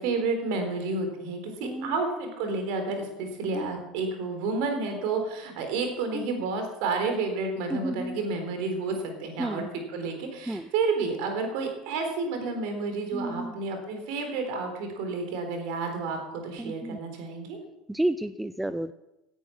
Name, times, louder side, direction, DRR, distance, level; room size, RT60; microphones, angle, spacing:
voice 1, 0.0-9.6 9.9-16.2 16.4-17.6, right 4 dB, 55° right, 5 dB, 3.9 m, -30 dB
voice 2, 1.6-2.0 3.5-3.7 6.1-6.3 7.7-8.2 9.4-9.7 10.5-10.7 13.1-13.5 16.6-17.0 17.9-18.9, right 1 dB, 5° right, 13 dB, 0.6 m, -31 dB
16.5 x 10.0 x 6.0 m, 0.94 s
figure-of-eight pair, 70°, 0 cm